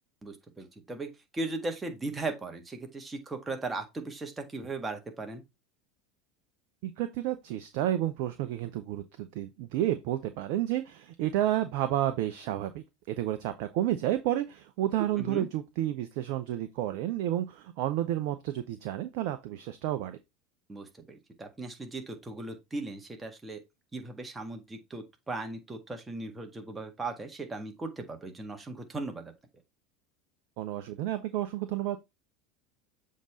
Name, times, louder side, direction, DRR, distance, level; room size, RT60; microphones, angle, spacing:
voice 1, 0.2-5.4 15.2-15.5 20.7-23.6 23.9-29.3, right 2 dB, 15° right, 1.7 m, -38 dB
voice 2, 6.8-20.2 30.6-32.0, right 13 dB, 55° right, 0.6 m, -31 dB
7.3 x 3.7 x 4.1 m
figure-of-eight pair, 75°, 0 cm